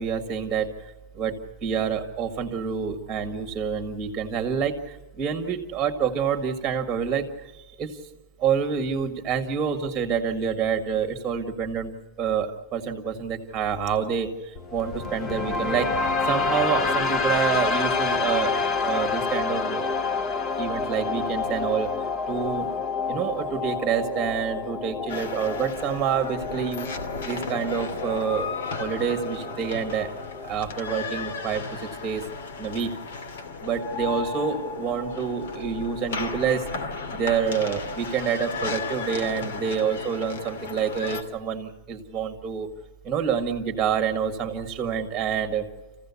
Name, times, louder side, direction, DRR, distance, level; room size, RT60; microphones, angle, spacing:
voice 1, 0.0-8.1 8.4-11.9 12.2-16.0 16.3-18.6 18.8-20.0 20.6-22.8 23.1-26.9 27.2-30.1 30.4-32.2 32.6-32.9 33.6-42.7 43.0-45.7, right 7 dB, 15° right, 5 dB, 1.8 m, -27 dB
sound 1, 14.5-30.5, left 4 dB, 20° left, 0.8 m, -28 dB
sound 2, 25.1-41.2, left 4 dB, 80° left, 2.7 m, -34 dB
27.5 x 15.5 x 8.4 m, 1.2 s
supercardioid pair, 170°, 0 cm